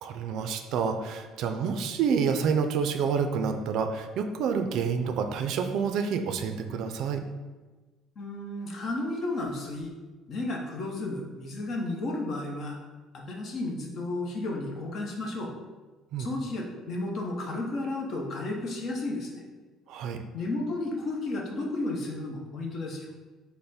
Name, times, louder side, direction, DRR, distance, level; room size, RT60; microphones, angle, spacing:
voice 1, 0.0-7.2 16.1-16.3 19.9-20.2, right 6 dB, 65° right, 6 dB, 0.4 m, -28 dB
voice 2, 8.2-9.9 10.3-12.8 13.1-15.5 16.2-19.4 20.3-23.1, left 2 dB, 45° left, 0 dB, 0.8 m, -33 dB
5.4 x 2.1 x 4.2 m, 1.3 s
cardioid pair, 150°, 0 cm